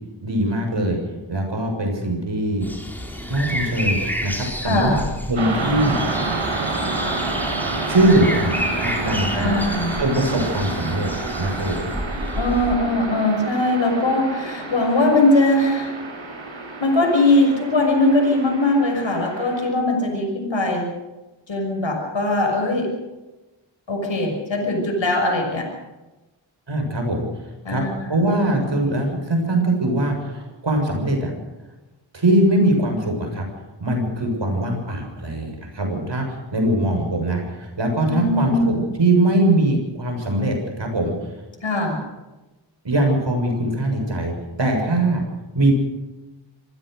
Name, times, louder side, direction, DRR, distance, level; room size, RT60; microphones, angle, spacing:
voice 1, 0.2-1.0 1.3-2.7 3.3-5.0 5.3-6.0 7.8-9.5 10.0-11.1 11.4-11.9 26.7-27.3 27.7-27.8 28.1-31.3 32.1-33.5 33.8-36.3 36.5-41.1 42.8-45.2 45.5-45.7, right 1 dB, 70° right, 3 dB, 7.0 m, -21 dB
sound 1, 2.6-12.7, equal, 5° left, 4.3 m, -30 dB
voice 2, 4.6-5.0 9.3-9.9 12.4-15.9 16.8-20.9 21.5-22.9 23.9-25.7 27.6-28.2 38.1-38.8 41.6-42.0, left 2 dB, 80° left, 1 dB, 6.3 m, -20 dB
sound 2, 5.4-19.7, right 3 dB, 90° right, 4.9 m, -29 dB
26.5 x 16.0 x 6.7 m, 1.1 s
wide cardioid pair, 60°, 45 cm